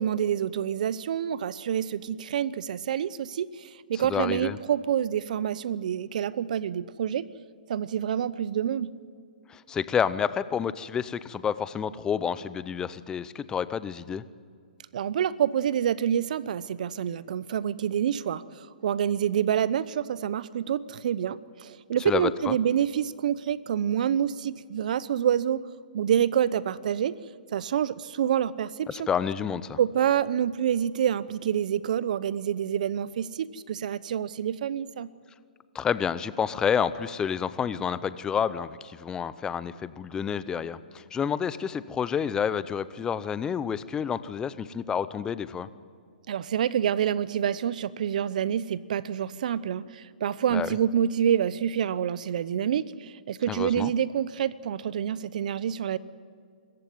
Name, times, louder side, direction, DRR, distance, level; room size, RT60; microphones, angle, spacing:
voice 1, 0.0-7.3 7.7-8.9 14.9-25.6 25.9-27.1 27.5-29.1 29.8-35.1 46.3-56.0, right 9 dB, 60° right, 18 dB, 0.8 m, -27 dB
voice 2, 3.9-4.6 9.5-14.2 22.1-22.6 28.9-29.8 35.7-45.7 50.5-50.8 53.5-53.9, left 7 dB, 15° left, 15 dB, 0.7 m, -29 dB
25.0 x 14.5 x 9.4 m, 2.2 s
hypercardioid pair, 135°, 5 cm